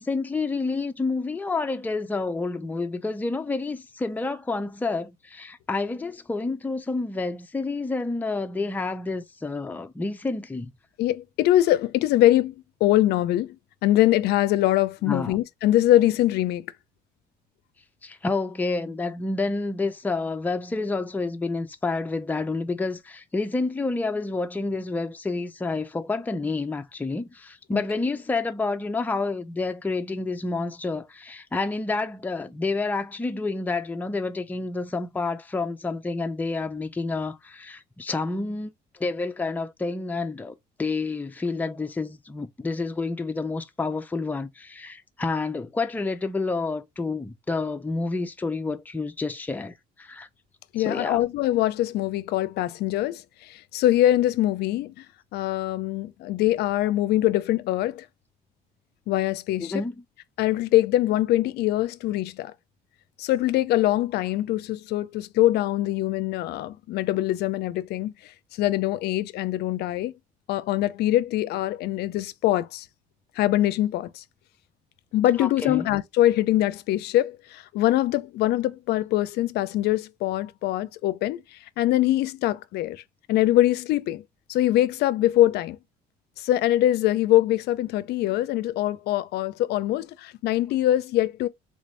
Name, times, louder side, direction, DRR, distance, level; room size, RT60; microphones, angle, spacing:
voice 1, 0.0-10.7 15.0-15.4 18.0-50.3 50.8-51.2 59.6-60.0 75.4-75.9, left 3 dB, 10° left, 0.4 m, -29 dB
voice 2, 11.0-12.6 12.8-13.6 13.8-16.7 27.7-27.8 50.7-55.1 55.3-58.1 59.1-59.7 60.4-62.5 63.2-70.1 70.5-72.9 73.4-74.2 75.1-83.0 83.3-84.2 84.5-85.8 86.4-91.5, left 14 dB, 75° left, 0.4 m, -23 dB
3.6 x 2.5 x 3.1 m
cardioid pair, 110°, 17 cm